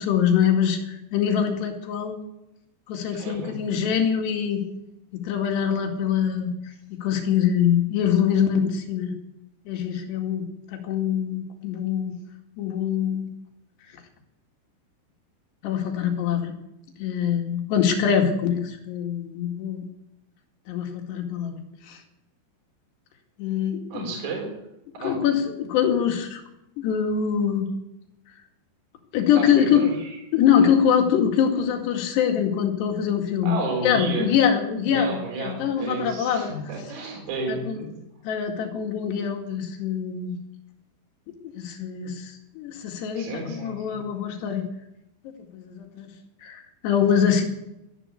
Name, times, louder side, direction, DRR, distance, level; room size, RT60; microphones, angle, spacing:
voice 1, 0.0-2.2 2.9-4.6 5.1-6.5 7.0-9.1 9.7-10.5 10.7-12.1 12.6-13.3 15.6-16.5 17.0-19.9 20.7-21.6 21.9-22.0 23.4-24.1 25.0-26.4 26.8-27.7 29.1-29.8 30.3-33.5 33.8-36.5 37.5-37.8 38.3-40.3 41.6-44.7 45.2-46.1 46.4-47.5, left 8 dB, 75° left, 3 dB, 4.2 m, -24 dB
voice 2, 3.1-3.6 23.9-24.5 25.0-25.2 29.3-30.2 30.6-30.7 33.4-34.3 34.8-37.9 43.1-44.0, right 3 dB, 45° right, 0 dB, 5.0 m, -32 dB
14.0 x 11.0 x 8.6 m, 0.85 s
omnidirectional pair, 5.0 m